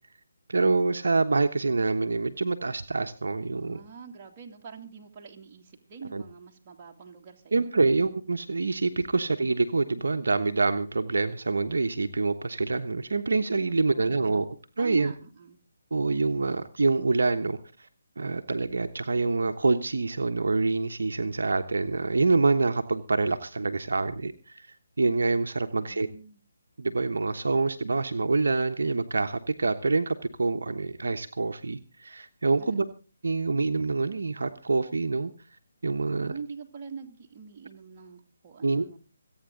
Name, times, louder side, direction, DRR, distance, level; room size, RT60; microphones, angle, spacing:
voice 1, 0.5-3.8 6.1-6.2 7.5-14.5 14.8-15.1 15.9-17.6 18.2-24.7 25.0-26.1 26.8-32.8 33.2-35.3 35.8-36.3 38.6-38.9, right 3 dB, 70° right, 7 dB, 1.1 m, -26 dB
voice 2, 3.5-8.0 13.7-14.5 14.8-15.6 25.8-26.4 32.6-32.9 36.0-39.0, right 6 dB, 30° right, 0 dB, 2.5 m, -44 dB
26.0 x 9.0 x 3.8 m, 0.35 s
figure-of-eight pair, 150°, 0 cm